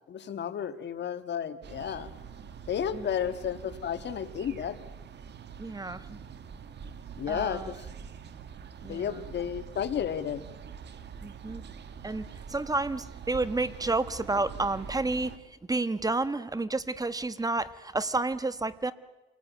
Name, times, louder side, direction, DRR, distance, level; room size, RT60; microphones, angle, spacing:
voice 1, 0.1-2.1 2.7-4.8 7.2-7.9 8.8-10.4, left 8 dB, 60° left, 11 dB, 1.7 m, -32 dB
sound 1, 1.6-15.4, right 7 dB, 60° right, 1.7 m, -45 dB
voice 2, 5.6-6.2 7.3-7.7 8.8-9.2 11.2-11.6 12.0-18.9, right 2 dB, 20° right, 14 dB, 1.3 m, -31 dB
27.5 x 19.0 x 9.3 m, 1.1 s
cardioid pair, 90°, 20 cm